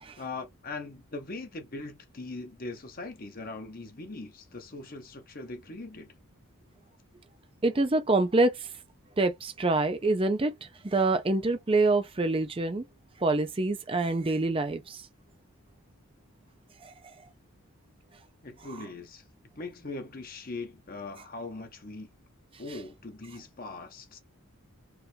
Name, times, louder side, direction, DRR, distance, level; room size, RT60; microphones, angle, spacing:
voice 1, 0.2-6.1 18.4-19.2 19.6-22.1 22.6-24.2, left 3 dB, 40° left, 0.8 m, -40 dB
voice 2, 7.6-8.7 9.2-10.5 10.8-12.8 13.2-15.0 16.8-16.9, right 2 dB, 25° right, 0.5 m, -26 dB
4.6 x 2.5 x 3.3 m
head